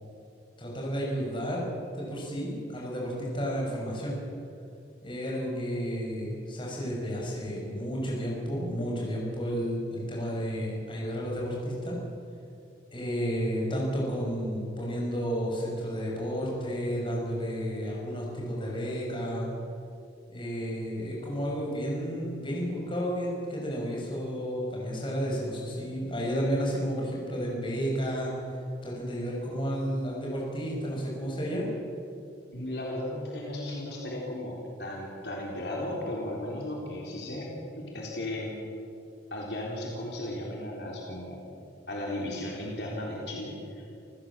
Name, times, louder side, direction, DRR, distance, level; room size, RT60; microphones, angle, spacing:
voice 1, 0.6-1.6 1.9-4.2 5.0-12.0 12.9-19.5 20.3-28.3 28.8-31.7, equal, 25° left, -3 dB, 6.6 m, -32 dB
voice 2, 32.5-38.6 39.3-41.5 41.9-43.9, left 1 dB, 65° left, -2 dB, 3.8 m, -35 dB
28.5 x 15.5 x 7.5 m, 2.5 s
head